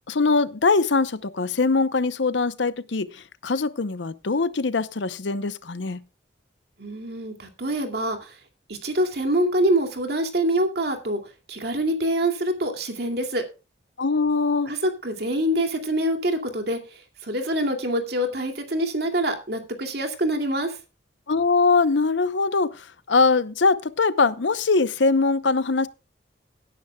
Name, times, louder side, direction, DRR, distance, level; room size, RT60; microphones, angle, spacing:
voice 1, 0.1-6.0 14.0-14.7 21.3-25.9, left 4 dB, 85° left, 0.8 m, -22 dB
voice 2, 6.8-8.3 8.7-11.2 11.5-13.4 14.7-14.8 15.0-16.8 17.2-20.8, right 1 dB, 60° right, 2.4 m, -25 dB
17.5 x 10.0 x 2.3 m
head